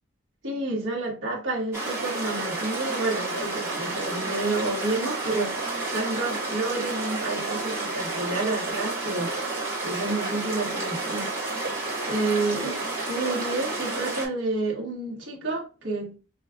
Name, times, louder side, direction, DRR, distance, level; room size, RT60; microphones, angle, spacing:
voice 1, 0.4-16.1, right 2 dB, 55° right, 1.4 m, -30 dB
sound 1, 1.7-14.3, right 2 dB, 10° right, 1.8 m, -30 dB
5.2 x 2.4 x 2.3 m
head